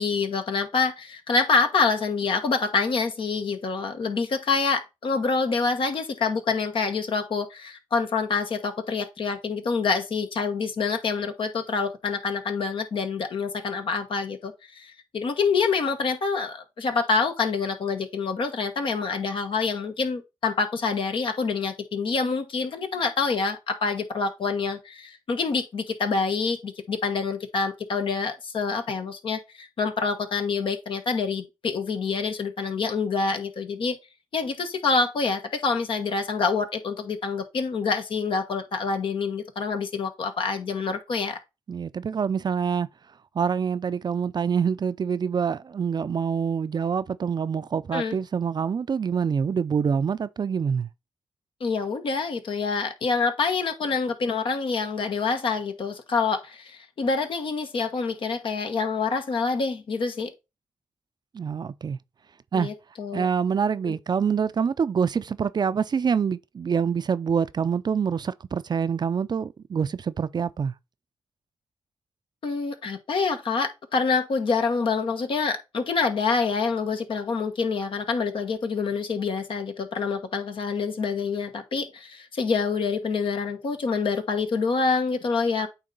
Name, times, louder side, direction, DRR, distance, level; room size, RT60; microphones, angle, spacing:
voice 1, 0.0-34.0 34.3-41.4 47.9-48.2 51.6-60.3 62.5-63.3 63.8-63.9 72.4-85.7, left 4 dB, 65° left, 1.2 m, -26 dB
voice 2, 41.7-42.9 43.4-50.9 61.3-62.0 62.5-62.7 63.1-70.7, right 6 dB, 50° right, 0.5 m, -26 dB
8.7 x 2.9 x 3.8 m
supercardioid pair, 40°, 9 cm